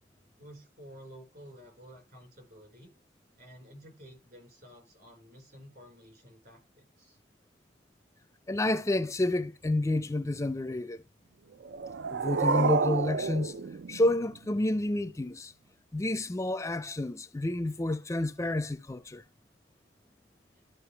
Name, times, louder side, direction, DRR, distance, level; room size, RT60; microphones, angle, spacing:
voice 1, 0.4-2.9 3.4-7.2, equal, 60° right, 4.6 m, -52 dB
voice 2, 8.5-11.0 12.1-13.5 13.9-15.5 15.9-19.2, left 1 dB, 15° left, 0.5 m, -29 dB
sound 1, 11.6-14.6, right 5 dB, 75° right, 0.5 m, -30 dB
12.5 x 5.5 x 3.3 m
head